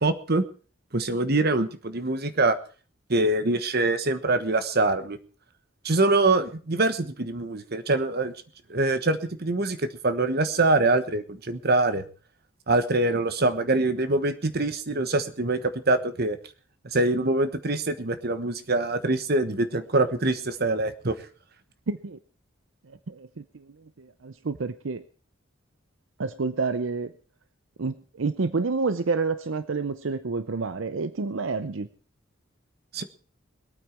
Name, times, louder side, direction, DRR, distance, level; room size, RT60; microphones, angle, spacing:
voice 1, 0.0-0.4 0.9-2.6 3.1-5.2 5.8-8.3 8.7-12.0 12.7-16.4 16.9-21.1 32.9-33.0, right 2 dB, 50° right, 11 dB, 1.2 m, -24 dB
voice 2, 21.9-22.2 22.9-25.0 26.2-27.1 27.8-31.9, right 4 dB, 70° right, 12 dB, 0.6 m, -29 dB
22.5 x 9.0 x 4.5 m, 0.39 s
head